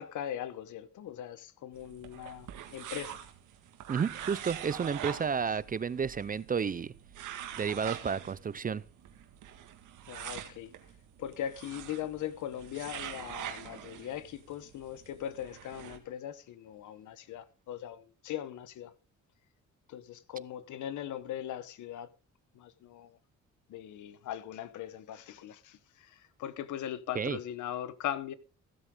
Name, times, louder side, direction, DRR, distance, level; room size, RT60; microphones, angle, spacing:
voice 1, 0.0-3.2 10.1-10.7 11.2-18.9 19.9-22.1 22.5-23.2 23.7-28.4, left 11 dB, 75° left, 1.1 m, -40 dB
sound 1, 1.7-16.0, right 10 dB, 85° right, 1.9 m, -45 dB
voice 2, 3.9-6.9 7.6-8.8 27.1-27.4, right 6 dB, 30° right, 0.5 m, -31 dB
16.0 x 7.9 x 3.7 m
cardioid pair, 90°, 30 cm